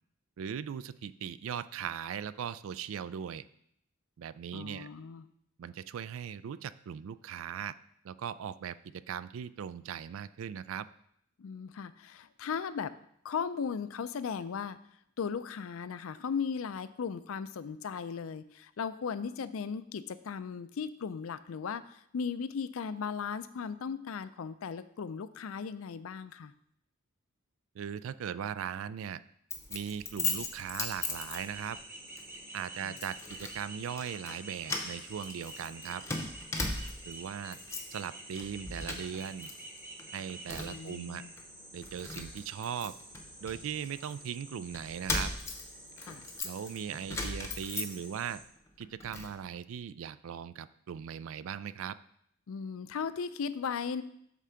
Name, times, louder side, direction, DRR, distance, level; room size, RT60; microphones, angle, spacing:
voice 1, 0.4-3.4 4.2-4.9 5.6-7.7 8.0-10.9 27.7-29.2 29.7-31.8 32.5-36.0 37.1-37.6 37.9-39.5 40.1-41.2 41.7-42.9 43.4-45.3 46.4-48.4 48.8-52.0, right 8 dB, 70° right, 15 dB, 0.3 m, -39 dB
voice 2, 4.5-5.3 11.4-12.9 13.2-14.8 15.2-26.5 32.8-33.0 40.6-41.3 46.0-46.3 52.5-54.0, left 6 dB, 75° left, 14 dB, 0.4 m, -37 dB
Keys jangling, 29.5-31.8 32.2-32.4 33.0-33.6 33.9-34.4 34.6-37.1 37.5-38.0 38.3-39.5 39.8-40.9 41.4-41.5 41.8-44.2 44.7-48.3 48.7-49.3, left 3 dB, 15° left, 0.8 m, -38 dB
sound 1, 31.0-48.4, right 1 dB, 10° right, 1.0 m, -49 dB
8.2 x 3.7 x 5.7 m, 0.70 s
head